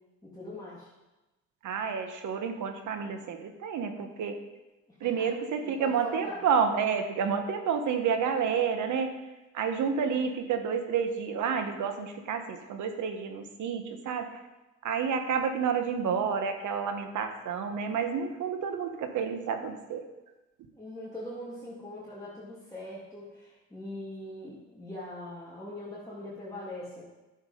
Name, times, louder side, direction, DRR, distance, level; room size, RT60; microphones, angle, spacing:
voice 1, 0.2-0.9 5.0-5.3 5.6-6.4 20.7-27.0, left 1 dB, 10° left, -8 dB, 2.8 m, -42 dB
voice 2, 1.6-4.4 5.0-9.1 9.5-14.3 14.8-20.0, right 6 dB, 75° right, 6 dB, 1.4 m, -30 dB
11.0 x 7.2 x 5.2 m, 1.1 s
cardioid pair, 90°, 30 cm